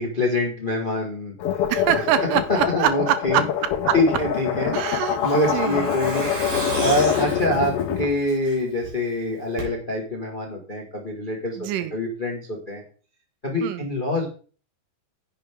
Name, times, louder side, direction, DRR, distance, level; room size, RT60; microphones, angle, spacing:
voice 1, 0.0-1.3 2.5-3.5 3.9-4.8 5.2-6.3 6.8-12.8 13.4-14.3, left 1 dB, 30° left, 1 dB, 0.9 m, -25 dB
sound 1, 1.4-8.1, left 9 dB, 85° left, 1.3 m, -25 dB
voice 2, 1.7-3.9 4.7-5.2 5.5-5.9 11.6-11.9 13.6-13.9, right 11 dB, 80° right, 13 dB, 2.2 m, -24 dB
Truck, 4.2-8.9 9.2-9.3 9.6-9.7, right 1 dB, 60° right, 4.6 m, -32 dB
10.0 x 7.7 x 3.6 m, 0.40 s
omnidirectional pair, 4.0 m